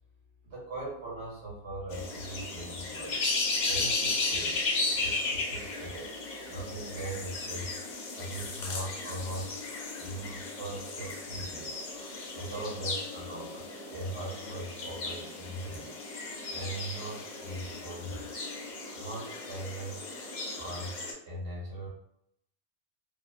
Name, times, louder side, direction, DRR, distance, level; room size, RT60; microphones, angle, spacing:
voice 1, 0.4-3.1 3.7-4.6 4.8-6.1 6.4-7.7 8.1-9.5 10.0-11.8 12.3-18.2 18.9-20.1 20.5-21.9, right 1 dB, 80° right, -4 dB, 1.2 m, -40 dB
sound 1, 1.9-21.1, left 3 dB, 55° left, 0.5 m, -35 dB
2.7 x 2.1 x 2.3 m, 0.74 s
omnidirectional pair, 1.2 m